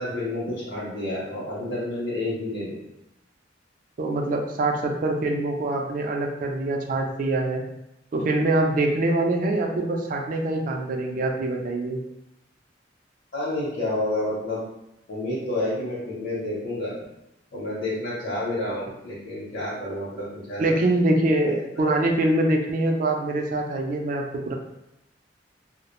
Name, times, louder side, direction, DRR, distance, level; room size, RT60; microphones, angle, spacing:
voice 1, 0.0-2.8 13.3-14.6 15.1-16.9 17.5-20.6, left 1 dB, 60° left, -9 dB, 0.7 m, -29 dB
voice 2, 4.0-7.6 8.1-12.0 20.6-24.5, right 2 dB, 45° right, 2 dB, 0.3 m, -24 dB
2.3 x 2.0 x 2.9 m, 0.86 s
head